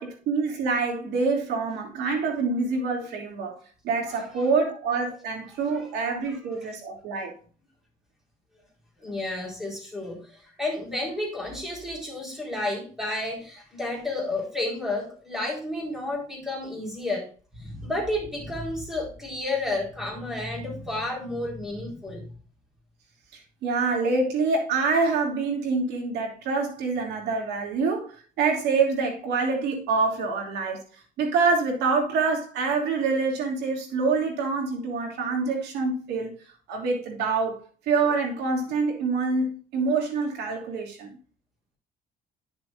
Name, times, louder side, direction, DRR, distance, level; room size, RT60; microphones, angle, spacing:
voice 1, 0.0-3.6 3.8-7.3 23.3-36.3 36.7-41.2, right 4 dB, 80° right, 2.8 m, -26 dB
voice 2, 9.0-22.3, left 2 dB, 5° right, 4.2 m, -31 dB
10.5 x 6.7 x 2.6 m
cardioid pair, 110°, 17 cm